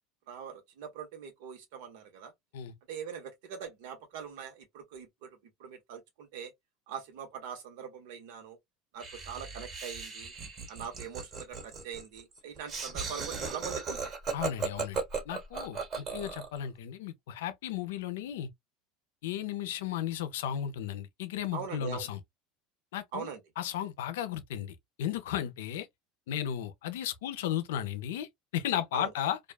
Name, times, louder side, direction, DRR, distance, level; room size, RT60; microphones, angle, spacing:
voice 1, 0.3-2.3 2.9-6.5 6.9-8.6 8.9-10.3 10.7-14.1 21.5-22.1 23.1-23.4 28.9-29.1, right 7 dB, 80° right, 1.1 m, -42 dB
Laughter, 9.0-16.6, right 5 dB, 40° right, 1.3 m, -37 dB
voice 2, 14.3-18.5 19.2-22.2 22.9-23.3 23.6-25.9 26.3-29.4, left 10 dB, 90° left, 0.5 m, -35 dB
2.4 x 2.3 x 2.3 m
supercardioid pair, 120°, 0 cm